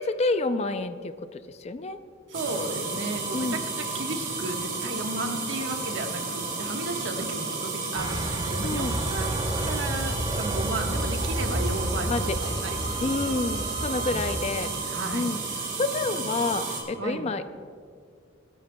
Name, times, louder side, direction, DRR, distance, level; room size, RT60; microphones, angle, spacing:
voice 1, 0.0-2.0 3.3-3.6 8.6-9.0 12.1-12.4 13.0-14.7 15.1-15.4 15.8-17.4, left 3 dB, 35° left, 11 dB, 0.4 m, -28 dB
sound 1, 2.3-16.8, right 4 dB, 40° right, 2.4 m, -32 dB
voice 2, 2.3-13.3 14.1-15.4 17.0-17.4, right 2 dB, 65° right, 3 dB, 1.3 m, -34 dB
sound 2, 8.0-14.6, right 1 dB, 25° right, 0.8 m, -31 dB
24.5 x 10.0 x 2.2 m, 2.2 s
head